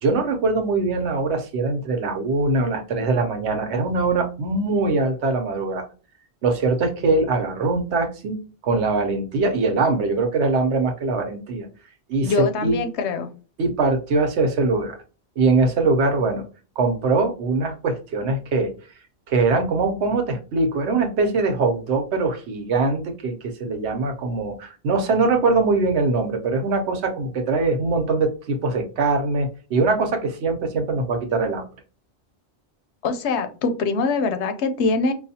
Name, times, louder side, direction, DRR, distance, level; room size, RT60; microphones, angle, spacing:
voice 1, 0.0-5.9 6.4-11.7 12.1-12.8 13.6-15.0 15.4-16.4 16.8-18.7 19.3-31.7, right 3 dB, 80° right, 5 dB, 1.0 m, -22 dB
voice 2, 12.2-13.3 33.0-35.1, left 4 dB, 85° left, 9 dB, 0.9 m, -23 dB
4.9 x 2.3 x 2.7 m, 0.36 s
omnidirectional pair, 1.1 m